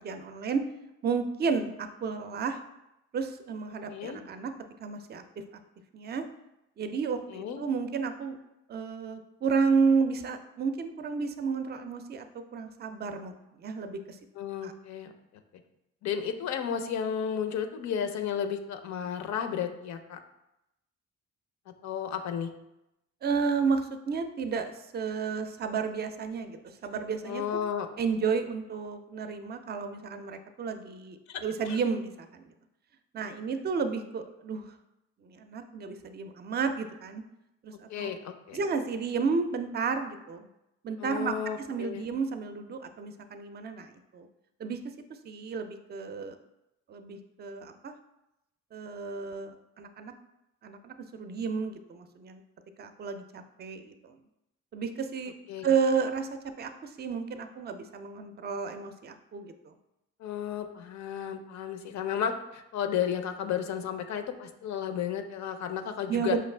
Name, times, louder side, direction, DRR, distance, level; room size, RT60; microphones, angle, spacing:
voice 1, 0.0-0.7 1.0-2.6 3.1-4.5 4.8-5.2 5.9-6.2 6.8-8.4 8.7-14.2 14.6-14.7 23.2-27.4 28.0-32.5 33.1-34.7 35.2-37.2 37.6-38.1 38.5-40.5 40.8-44.3 44.6-44.9 45.2-46.4 46.9-47.9 48.7-50.1 50.6-52.4 52.8-54.2 54.7-55.3 55.6-59.7 66.1-66.4, right 5 dB, 35° right, 8 dB, 0.4 m, -32 dB
voice 2, 3.9-4.2 7.3-7.6 14.4-15.1 16.0-20.2 21.8-22.5 27.2-27.9 31.3-31.8 37.9-38.6 41.0-42.1 55.5-55.7 60.2-66.4, left 8 dB, 65° left, 8 dB, 0.5 m, -33 dB
5.1 x 2.4 x 3.2 m, 0.89 s
cardioid pair, 90°, 30 cm